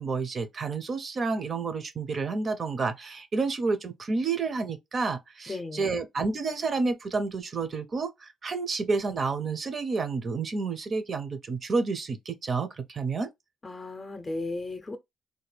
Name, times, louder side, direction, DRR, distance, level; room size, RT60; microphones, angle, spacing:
voice 1, 0.0-13.3, right 4 dB, 45° right, 0.6 m, -30 dB
voice 2, 5.5-6.0 13.6-15.0, left 2 dB, 30° left, 0.6 m, -35 dB
3.3 x 2.2 x 3.3 m
cardioid pair, 90°, 0 cm